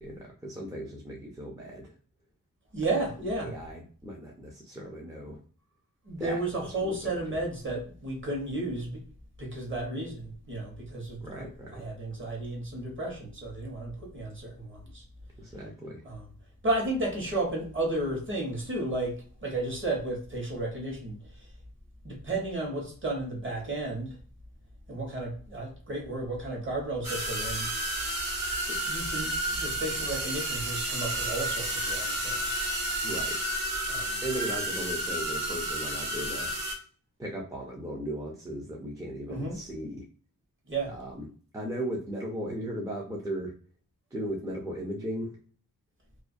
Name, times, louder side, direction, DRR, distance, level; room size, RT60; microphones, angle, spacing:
voice 1, 0.0-1.9 3.4-5.4 6.2-7.1 11.2-11.8 15.4-16.0 33.0-33.4 34.2-36.5 37.2-40.1 40.9-41.3 41.5-43.5 44.1-45.4, equal, 10° right, -3 dB, 0.4 m, -37 dB
voice 2, 2.7-3.5 6.1-9.0 9.4-15.0 16.0-16.3 16.6-21.5 22.0-24.2 24.9-27.7 28.7-32.7 33.9-34.2 39.3-39.6 40.7-40.9, right 2 dB, 35° right, -1 dB, 0.9 m, -33 dB
sound 1, 27.0-36.7, right 1 dB, 75° right, 0.9 m, -31 dB
2.3 x 2.2 x 2.4 m, 0.43 s
wide cardioid pair, 155°, 35 cm